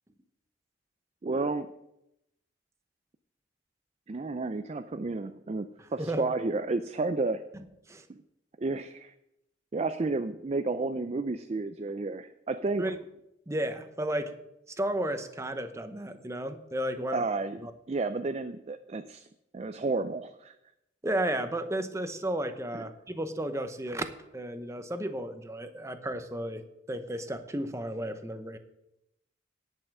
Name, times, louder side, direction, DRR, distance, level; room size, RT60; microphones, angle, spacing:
voice 1, 1.2-1.7 4.1-7.4 8.1-8.2 8.6-9.1 9.7-12.9 17.1-17.6 17.9-19.3 19.5-20.5 22.7-22.8, right 3 dB, 35° right, 9 dB, 0.4 m, -31 dB
voice 2, 13.5-14.4 14.8-17.3 17.6-17.7 21.0-24.1 24.3-26.6 26.9-28.6, right 1 dB, 15° right, 8 dB, 0.8 m, -33 dB
11.0 x 5.6 x 7.5 m, 0.84 s
head